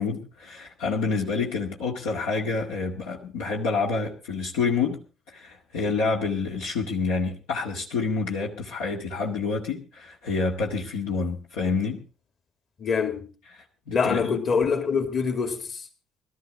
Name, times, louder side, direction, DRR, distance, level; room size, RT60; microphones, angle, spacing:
voice 1, 0.0-5.0 5.3-12.0 13.9-14.4, left 4 dB, 70° left, 2.0 m, -28 dB
voice 2, 12.8-13.3 13.9-15.8, left 5 dB, 45° left, 2.5 m, -25 dB
20.0 x 13.0 x 3.8 m
figure-of-eight pair, 50°, 0 cm